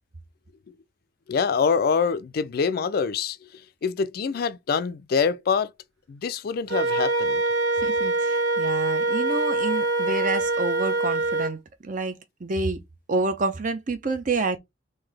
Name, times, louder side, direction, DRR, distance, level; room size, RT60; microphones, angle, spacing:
voice 1, 1.3-3.5 3.8-5.7 6.1-7.4, left 5 dB, 50° left, 0.3 m, -25 dB
Wind instrument woodwind instrument, 6.7-11.5, right 2 dB, 65° right, 1.0 m, -24 dB
voice 2, 7.8-12.8 13.1-14.6, right 3 dB, 45° right, 0.6 m, -28 dB
3.8 x 2.7 x 3.3 m
head